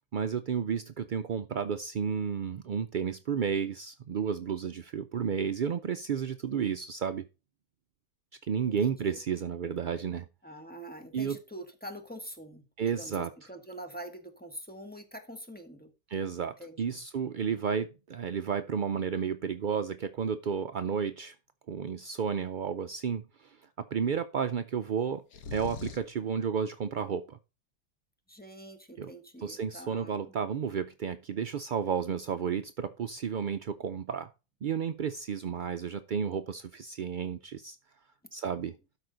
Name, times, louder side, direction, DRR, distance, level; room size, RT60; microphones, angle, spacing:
voice 1, 0.1-7.2 8.4-10.3 11.1-11.4 12.8-13.3 16.1-21.3 21.7-25.2 25.5-27.4 29.0-29.1 29.4-34.3 34.6-37.8 38.3-38.7, right 7 dB, 75° right, 10 dB, 0.4 m, -32 dB
voice 2, 8.6-9.2 10.4-15.9 16.6-17.0 28.3-30.3, equal, 5° left, 5 dB, 1.3 m, -45 dB
sound 1, 25.3-26.2, left 5 dB, 85° left, 1.5 m, -40 dB
12.5 x 5.0 x 3.9 m, 0.29 s
omnidirectional pair, 1.5 m